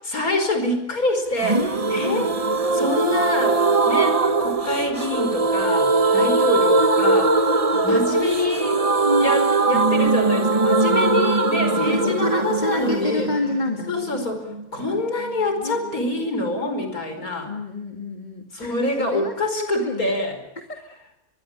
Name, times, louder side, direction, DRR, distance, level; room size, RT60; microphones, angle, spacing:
voice 1, 0.1-2.3 2.7-7.4 7.8-8.8 9.2-13.3 13.9-17.5 18.5-20.4, left 2 dB, 85° left, 7 dB, 5.3 m, -26 dB
sound 1, 1.4-15.0 15.3-15.4 15.6-15.7, right 3 dB, 25° right, 1.2 m, -21 dB
voice 2, 12.0-13.9 15.6-16.3 17.5-20.1 20.7-20.8, left 2 dB, 30° left, 4 dB, 2.4 m, -29 dB
23.0 x 23.0 x 8.9 m, 0.82 s
omnidirectional pair, 1.5 m